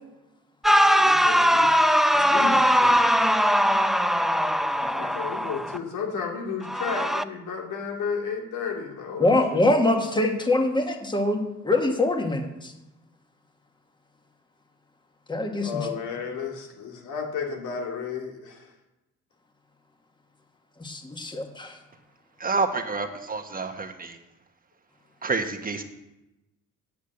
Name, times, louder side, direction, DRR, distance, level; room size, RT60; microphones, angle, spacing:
voice 1, 0.6-1.7 2.1-3.0 4.9-9.6 15.6-18.7, left 5 dB, 85° left, 1 dB, 2.2 m, -33 dB
sound 1, 0.6-5.8 6.6-7.2, equal, ahead, 0.4 m, -20 dB
voice 2, 4.8-5.2 9.2-12.7 15.3-15.9 20.8-21.8, left 2 dB, 15° left, 5 dB, 1.5 m, -24 dB
voice 3, 22.4-24.2 25.2-25.8, right 4 dB, 30° right, 5 dB, 1.2 m, -28 dB
8.5 x 8.2 x 7.8 m, 0.97 s
cardioid pair, 90°, 30 cm